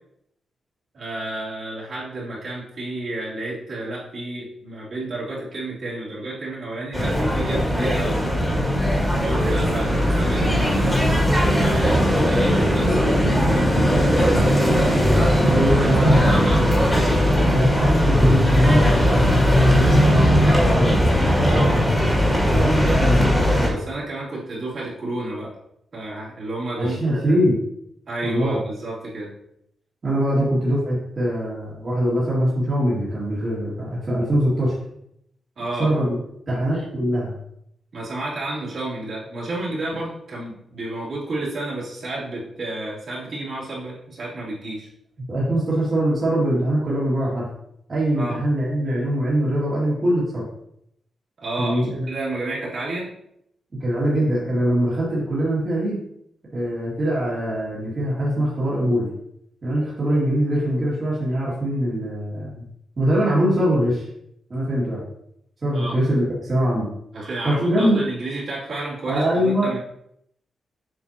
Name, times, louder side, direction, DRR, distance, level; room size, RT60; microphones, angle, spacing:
voice 1, 0.9-8.2 9.2-11.3 11.6-14.7 15.8-16.8 21.5-21.8 23.6-25.6 25.9-27.4 28.1-29.3 35.6-35.9 36.7-36.8 37.9-44.9 48.2-48.4 51.4-51.8 52.1-53.1 65.7-66.0 67.1-69.8, right 2 dB, 45° right, -7 dB, 2.6 m, -31 dB
sound 1, 6.9-23.7, equal, 5° left, 2.0 m, -18 dB
voice 2, 15.4-16.6 17.5-19.2 19.6-21.0 22.5-23.3 26.8-27.6 28.2-28.6 30.0-34.7 35.8-36.1 36.5-37.3 45.3-47.5 47.9-50.5 51.6-52.1 53.8-56.0 56.5-59.1 59.6-62.7 63.0-64.0 64.5-65.0 65.6-66.9 67.4-68.0 69.1-69.7, equal, 30° right, -9 dB, 2.2 m, -22 dB
7.9 x 5.9 x 2.9 m, 0.75 s
wide cardioid pair, 180°, 0 cm